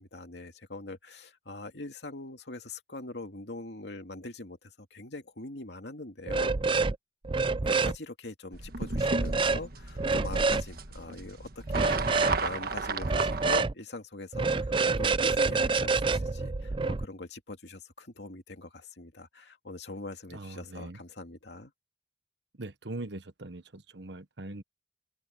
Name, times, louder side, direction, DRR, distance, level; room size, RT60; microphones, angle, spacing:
voice 1, 0.0-6.5 7.6-21.7, left 2 dB, 70° left, 2.6 m, -43 dB
sound 1, 6.3-7.0 7.2-8.0 9.0-9.6 10.0-10.6 11.7-12.4 13.0-13.7 14.3-17.0, right 4 dB, 30° right, 0.5 m, -27 dB
sound 2, 8.5-13.6, right 4 dB, 55° right, 1.5 m, -34 dB
voice 2, 20.3-21.0 22.6-24.6, right 2 dB, 75° right, 1.3 m, -41 dB
open air
head